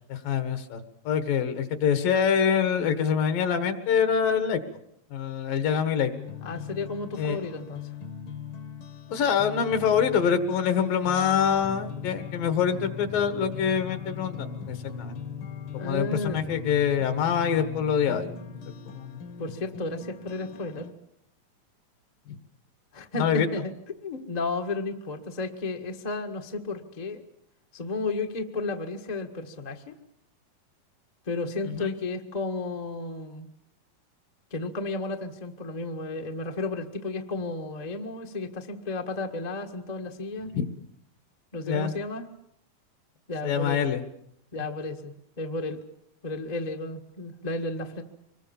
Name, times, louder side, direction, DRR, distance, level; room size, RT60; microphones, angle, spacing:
voice 1, 0.1-0.8 1.1-4.6 5.1-6.1 7.2-7.4 9.1-15.2 15.7-18.4 18.9-19.2 22.3-22.4 23.2-23.5 31.7-31.9 40.5-40.7 41.6-41.9 43.4-44.0, left 7 dB, 80° left, 10 dB, 3.3 m, -25 dB
sound 1, 6.1-20.9, left 7 dB, 55° left, 1.5 m, -39 dB
voice 2, 6.4-7.9 15.7-16.4 19.4-20.9 22.9-23.7 24.0-27.2 27.7-30.0 31.3-33.5 34.5-40.5 41.5-42.3 43.3-43.8 44.5-45.8 46.2-48.0, left 3 dB, 40° left, 3 dB, 0.5 m, -33 dB
25.0 x 21.5 x 7.2 m, 0.74 s
omnidirectional pair, 3.9 m